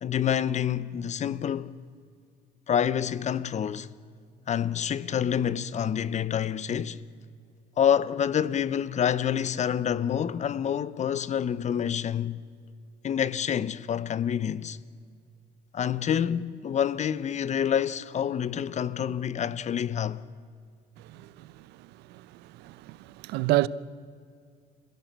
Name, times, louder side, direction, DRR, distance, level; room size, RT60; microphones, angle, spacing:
voice 1, 0.0-1.7 2.7-3.9 4.5-7.0 7.8-12.4 13.0-14.8 15.7-20.2, left 9 dB, 45° left, 0.9 m, -27 dB
voice 2, 22.6-23.0 23.2-23.7, right 17 dB, 90° right, 0.7 m, -25 dB
29.0 x 16.0 x 7.5 m
cardioid pair, 110°, 17 cm